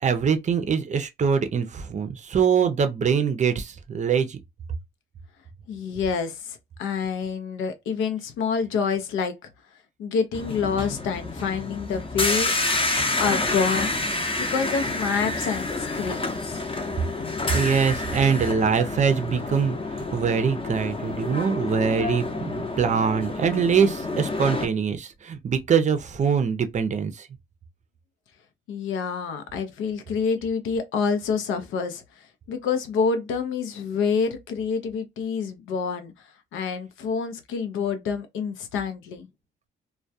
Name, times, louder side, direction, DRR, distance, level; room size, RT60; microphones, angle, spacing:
voice 1, 0.0-4.4 17.5-27.3, right 6 dB, 35° right, 0.5 m, -23 dB
voice 2, 5.7-9.5 10.0-12.5 13.2-13.9 14.4-16.6 28.7-32.0 32.5-36.1 36.5-39.3, left 5 dB, 85° left, 0.6 m, -27 dB
sound 1, 10.3-24.7, left 2 dB, 25° left, 0.7 m, -29 dB
2.2 x 2.2 x 2.6 m
cardioid pair, 90°, 20 cm